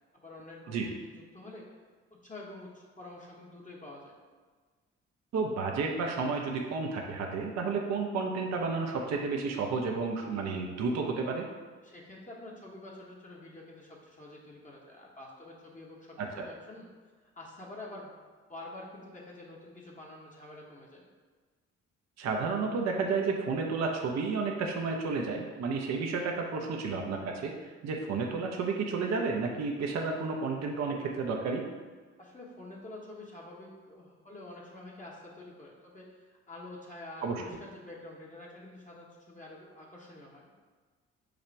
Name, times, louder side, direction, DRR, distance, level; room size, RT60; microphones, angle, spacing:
voice 1, 0.1-1.8 2.1-4.1 11.8-16.2 16.5-16.9 17.4-18.1 18.5-21.1 32.2-40.5, left 2 dB, 25° left, -4 dB, 1.1 m, -47 dB
voice 2, 5.3-11.5 16.2-16.5 22.2-31.6 37.2-37.4, right 4 dB, 50° right, 1 dB, 0.7 m, -31 dB
4.9 x 2.4 x 4.4 m, 1.4 s
hypercardioid pair, 40°, 34 cm